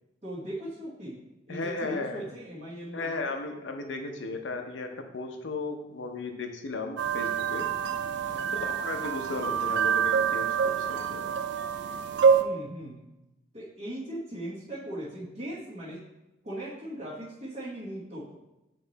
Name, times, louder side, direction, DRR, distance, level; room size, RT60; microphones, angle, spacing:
voice 1, 0.2-1.2 1.5-3.3 8.2-8.5 12.4-13.0 13.5-16.0 16.4-18.3, right 1 dB, 35° right, -9 dB, 1.2 m, -39 dB
voice 2, 1.5-2.2 2.9-7.6 8.5-11.3, left 3 dB, 85° left, 5 dB, 0.7 m, -35 dB
sound 1, 7.0-12.4, right 7 dB, 65° right, 0.4 m, -26 dB
7.6 x 3.1 x 4.0 m, 0.96 s
head